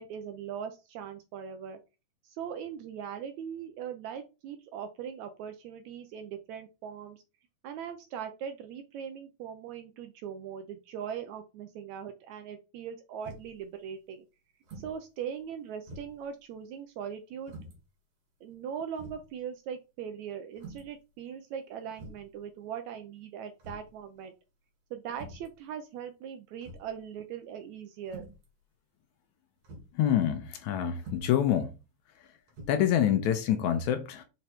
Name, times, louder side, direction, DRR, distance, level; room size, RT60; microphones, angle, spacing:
voice 1, 0.0-1.8 2.2-7.2 7.6-14.2 14.8-17.5 18.4-24.3 24.9-28.2, right 8 dB, 75° right, 1.7 m, -40 dB
sound 1, 13.2-13.6 14.6-15.0 15.4-15.5 15.9-16.3 17.4-17.8 18.5-18.6 19.0-19.3 20.6-21.0 21.9-22.3 23.6-24.0 25.1-25.5 26.6-27.0 28.0-28.4 29.6-29.9 31.0-31.4 32.5-32.7, right 2 dB, 50° right, 3.2 m, -46 dB
voice 2, 30.0-31.7 32.7-34.2, left 10 dB, 75° left, 2.0 m, -26 dB
6.1 x 4.5 x 4.3 m
omnidirectional pair, 3.8 m